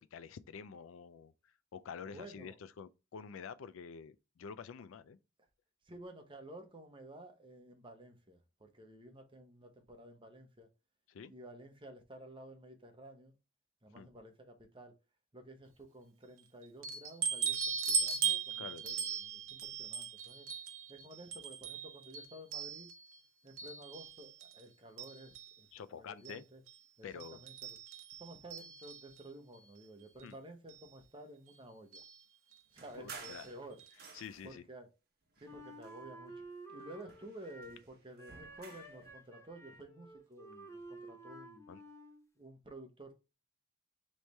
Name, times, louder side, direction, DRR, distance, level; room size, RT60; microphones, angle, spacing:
voice 1, 0.0-1.3 1.7-5.2 11.1-11.3 14.0-14.1 18.6-18.8 25.7-26.4 27.0-27.4 30.2-30.4 33.0-33.5 34.1-34.6 41.7-41.8, left 6 dB, 80° left, 0.4 m, -48 dB
voice 2, 2.1-2.6 5.8-10.7 11.3-13.3 13.8-14.9 15.3-20.5 20.9-22.9 23.4-26.6 27.0-27.8 28.2-32.0 32.7-33.8 34.4-34.9 35.4-41.7 42.4-43.1, right 1 dB, 25° right, 0.9 m, -52 dB
sound 1, 16.8-23.2 23.6-24.6 25.0-25.6 26.2-26.4 26.7-26.8 27.2-29.2 30.2-30.3 30.7-30.8 31.9-32.1 33.2-33.5 33.8-33.9 34.2-34.3, right 6 dB, 90° right, 0.8 m, -38 dB
sound 2, 32.8-34.6 35.3-36.5 36.8-39.0, right 5 dB, 50° right, 0.9 m, -54 dB
Wind instrument woodwind instrument, 35.4-37.9 38.2-42.3, right 2 dB, 15° left, 0.7 m, -52 dB
3.3 x 3.1 x 4.0 m
head